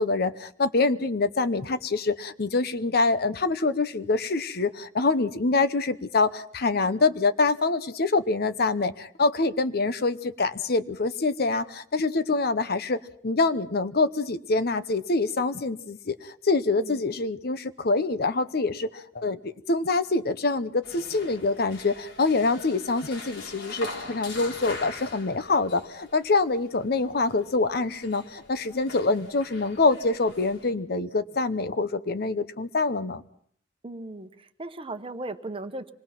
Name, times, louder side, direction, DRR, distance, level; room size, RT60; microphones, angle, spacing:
voice 1, 0.0-33.2, left 3 dB, 55° left, 12 dB, 0.8 m, -25 dB
sound 1, 20.8-30.7, left 2 dB, 85° left, 3.6 m, -43 dB
voice 2, 33.8-35.9, right 2 dB, 30° right, 9 dB, 1.0 m, -37 dB
26.0 x 20.5 x 5.9 m, 0.63 s
head